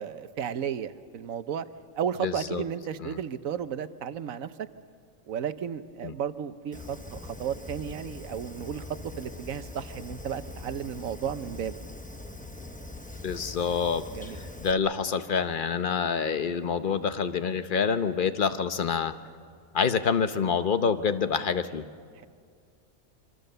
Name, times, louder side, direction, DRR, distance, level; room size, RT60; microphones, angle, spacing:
voice 1, 0.0-1.7 1.9-4.7 5.3-11.8 14.1-14.4, right 8 dB, 70° right, 12 dB, 1.2 m, -33 dB
voice 2, 2.2-2.6 3.0-3.2 6.0-6.1 13.2-14.0 14.3-19.1 19.7-21.9, left 6 dB, 40° left, 10 dB, 0.9 m, -27 dB
Fire, 6.7-14.7, left 2 dB, 5° left, 0.7 m, -42 dB
26.5 x 24.5 x 6.7 m, 2.1 s
omnidirectional pair, 1.5 m